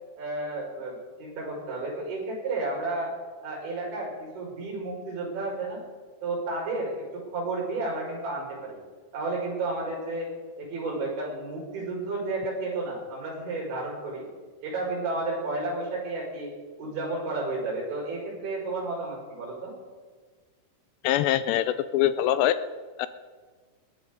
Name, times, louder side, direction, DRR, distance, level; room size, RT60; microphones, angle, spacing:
voice 1, 0.2-3.1 3.4-5.8 6.2-8.8 9.1-10.3 10.6-14.3 14.6-16.5 16.8-19.7, right 2 dB, 90° right, -3 dB, 7.8 m, -32 dB
voice 2, 21.0-22.6 23.0-23.1, left 12 dB, 85° left, 13 dB, 2.7 m, -23 dB
20.5 x 16.5 x 3.9 m, 1.5 s
omnidirectional pair, 5.1 m